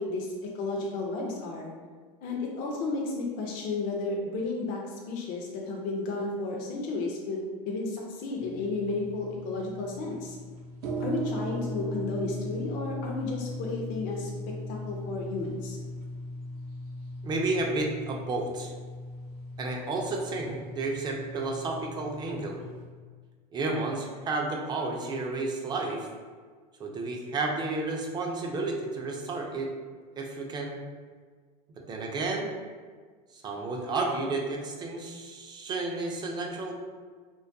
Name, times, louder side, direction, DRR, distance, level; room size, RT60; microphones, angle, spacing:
voice 1, 0.0-1.7 2.2-10.4 11.0-14.3 14.7-15.8, left 3 dB, 45° left, -1 dB, 0.4 m, -33 dB
sound 1, 8.4-22.9, equal, 75° right, 0.5 m, -38 dB
voice 2, 17.2-18.7 19.6-22.6 23.5-26.1 26.8-29.7 30.2-30.8 31.8-32.5 33.3-36.7, right 3 dB, 20° right, 0 dB, 0.3 m, -31 dB
2.3 x 2.2 x 2.5 m, 1.5 s
supercardioid pair, 115°, 20 cm